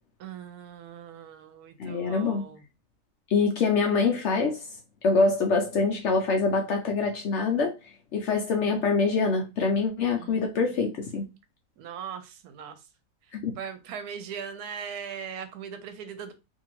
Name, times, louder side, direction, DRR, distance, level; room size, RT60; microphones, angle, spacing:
voice 1, 0.2-2.6 8.7-8.8 10.2-11.0 11.8-12.8 13.6-16.3, right 7 dB, 85° right, 1.1 m, -40 dB
voice 2, 1.8-2.4 3.3-4.7 5.0-7.8 8.1-11.2 13.3-13.6, left 4 dB, 65° left, 0.7 m, -25 dB
2.7 x 2.6 x 2.9 m
omnidirectional pair, 1.6 m